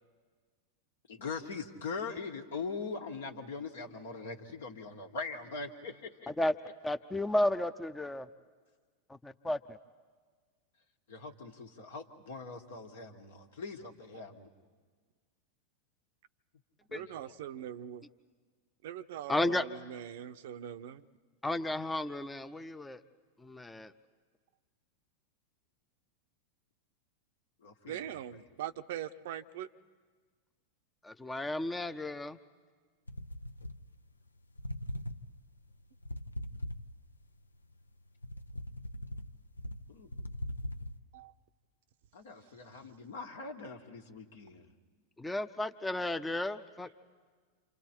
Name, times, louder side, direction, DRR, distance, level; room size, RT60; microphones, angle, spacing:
voice 1, 1.1-6.3 11.1-14.5 16.9-17.3 27.6-28.0 39.9-40.1 42.1-44.7, left 4 dB, 70° left, 4 dB, 1.7 m, -42 dB
voice 2, 6.8-8.3 9.1-9.8 16.9-17.0 19.3-19.7 21.4-23.0 23.4-23.9 31.0-32.4 45.2-46.9, left 1 dB, 10° left, 9 dB, 0.6 m, -33 dB
voice 3, 16.9-18.1 18.8-21.1 27.9-29.7 41.1-41.3, right 10 dB, 60° right, 11 dB, 0.6 m, -41 dB
sound 1, 33.1-34.3 34.6-37.3 37.7-41.0, left 1 dB, 85° left, 0.5 m, -41 dB
28.5 x 26.5 x 4.4 m, 1.5 s
figure-of-eight pair, 90°, 0 cm